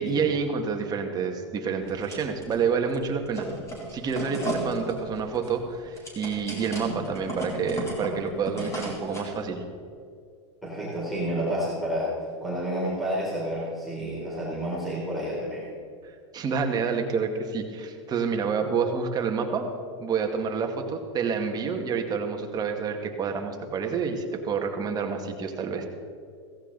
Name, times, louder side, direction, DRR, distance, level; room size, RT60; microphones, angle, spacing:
voice 1, 0.0-3.5 3.9-9.6 16.3-19.7 20.0-25.8, right 5 dB, 25° right, 3 dB, 1.9 m, -28 dB
sound 1, 1.8-2.6 2.9-9.4, equal, 20° left, 4.2 m, -35 dB
voice 2, 10.6-12.1 12.4-15.6, equal, ahead, -8 dB, 3.9 m, -30 dB
16.5 x 15.0 x 4.0 m, 2.3 s
hypercardioid pair, 125°, 15 cm